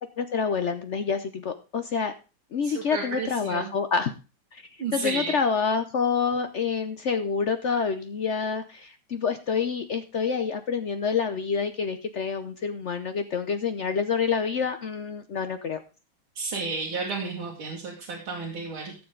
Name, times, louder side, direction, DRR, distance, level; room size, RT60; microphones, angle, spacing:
voice 1, 0.2-2.1 2.5-4.1 4.5-4.6 4.9-15.8, left 6 dB, 75° left, 9 dB, 0.6 m, -27 dB
voice 2, 2.6-3.7 4.8-5.4 16.4-19.0, right 4 dB, 85° right, -2 dB, 2.9 m, -32 dB
16.0 x 7.2 x 3.8 m, 0.33 s
omnidirectional pair, 2.2 m